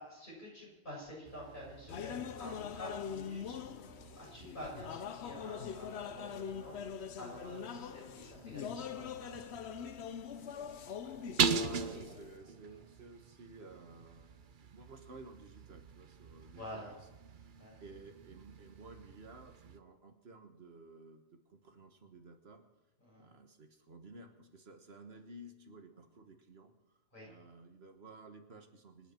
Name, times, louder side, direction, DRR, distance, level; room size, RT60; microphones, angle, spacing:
voice 1, 0.0-3.6 4.2-9.5 10.3-10.7 11.3-12.2 16.5-16.9 17.6-17.7 23.0-23.3 27.1-27.3, equal, 50° left, -4 dB, 6.9 m, -49 dB
sound 1, 1.2-19.8, right 6 dB, 55° right, 0.9 m, -42 dB
sound 2, 1.9-12.4, left 8 dB, 80° left, 1.0 m, -43 dB
voice 2, 11.0-14.4 14.7-17.5 17.8-22.7 23.2-26.8 27.2-29.1, right 2 dB, 70° right, 5 dB, 1.6 m, -55 dB
25.5 x 9.9 x 4.4 m, 1.1 s
omnidirectional pair, 1.1 m